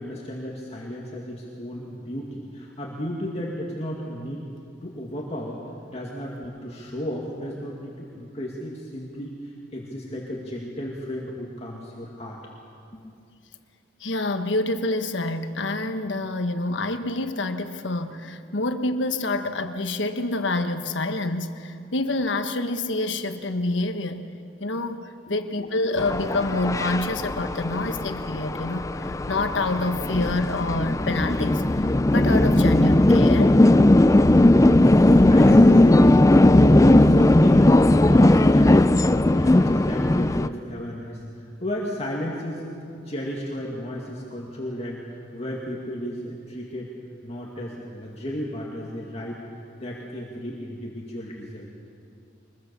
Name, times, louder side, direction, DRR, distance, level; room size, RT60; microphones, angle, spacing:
voice 1, 0.0-4.4 4.8-5.6 5.9-12.4 12.9-13.1 25.3-25.4 35.0-39.0 39.3-42.7 43.1-46.9 47.2-49.4 49.8-51.7, equal, 35° left, -2 dB, 2.1 m, -33 dB
voice 2, 14.0-24.2 24.6-25.0 25.3-31.6 32.1-33.6, left 2 dB, 85° left, 8 dB, 1.3 m, -27 dB
sound 1, 26.0-40.5, left 1 dB, 15° left, 0.4 m, -17 dB
23.5 x 21.5 x 7.0 m, 2.5 s
head